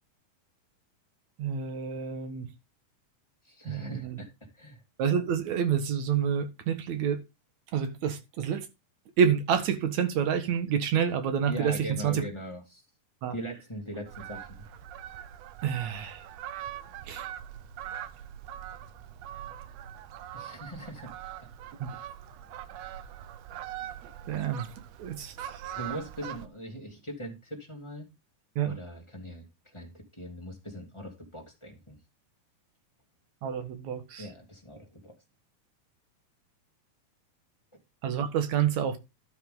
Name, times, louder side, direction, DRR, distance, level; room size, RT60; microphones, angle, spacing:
voice 1, 1.4-2.5 3.7-4.2 5.0-7.2 7.7-8.7 9.2-11.8 12.0-12.2 13.2-13.3 15.6-16.3 17.1-17.3 21.8-21.9 24.3-24.7 25.0-25.7 28.6-28.7 33.4-34.3 38.0-39.0, right 8 dB, 60° right, 2.6 m, -28 dB
voice 2, 3.4-4.8 11.5-12.8 13.3-14.7 20.3-21.1 21.4-21.5 25.7-28.1 28.6-32.0 34.2-35.1, right 1 dB, 10° left, 2.2 m, -41 dB
Fowl, 14.1-26.5, right 11 dB, 85° right, 1.4 m, -42 dB
13.0 x 5.7 x 3.9 m
omnidirectional pair, 3.9 m